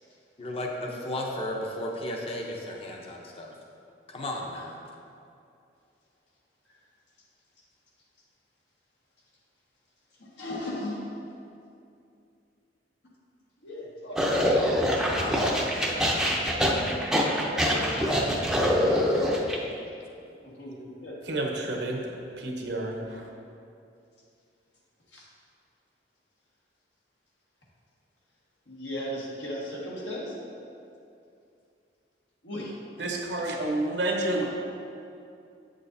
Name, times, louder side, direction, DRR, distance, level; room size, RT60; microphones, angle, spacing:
voice 1, 0.4-3.5 4.1-4.8 15.2-16.1 16.9-17.5 20.2-20.3, left 1 dB, 35° left, 0 dB, 0.7 m, -35 dB
voice 2, 10.2-11.3 13.6-14.5 15.3-15.5 17.2-19.4 20.6-21.2 25.1-25.2 28.7-30.4 32.4-32.7, left 1 dB, 85° left, -5 dB, 1.5 m, -37 dB
sound 1, 14.2-19.6, equal, 5° right, 0.5 m, -24 dB
voice 3, 21.3-22.0 22.4-23.3 33.0-34.4, right 2 dB, 70° right, 1 dB, 0.9 m, -29 dB
8.1 x 6.3 x 2.7 m, 2.5 s
head